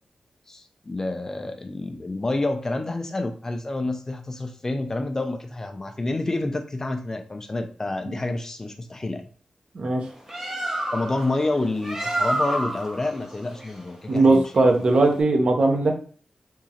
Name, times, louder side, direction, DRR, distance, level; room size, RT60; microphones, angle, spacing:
voice 1, 0.5-9.3 10.9-14.4, left 2 dB, 20° left, 6 dB, 0.3 m, -28 dB
voice 2, 9.7-10.1 14.1-15.9, right 2 dB, 50° right, 3 dB, 0.7 m, -19 dB
Bird, 10.0-15.2, right 1 dB, 20° right, 0.8 m, -30 dB
3.6 x 2.9 x 2.8 m, 0.42 s
wide cardioid pair, 165°, 2 cm